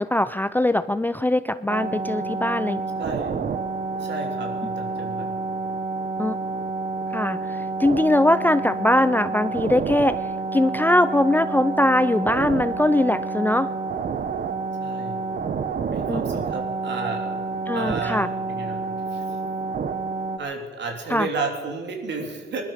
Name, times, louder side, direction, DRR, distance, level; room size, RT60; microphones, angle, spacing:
voice 1, 0.0-2.8 6.2-6.3 7.1-10.2 10.5-13.7 16.1-16.2 17.7-18.3 21.1-21.3, left 1 dB, 10° left, 14 dB, 0.4 m, -21 dB
sound 1, 1.7-20.4, right 4 dB, 45° right, 1.1 m, -29 dB
voice 2, 3.0-3.4 4.0-5.3 14.8-15.2 15.9-17.3 17.7-18.8 19.1-19.2 20.4-22.6, right 3 dB, 60° right, 3 dB, 3.3 m, -32 dB
20.0 x 12.0 x 5.6 m, 1.4 s
cardioid pair, 90°, 20 cm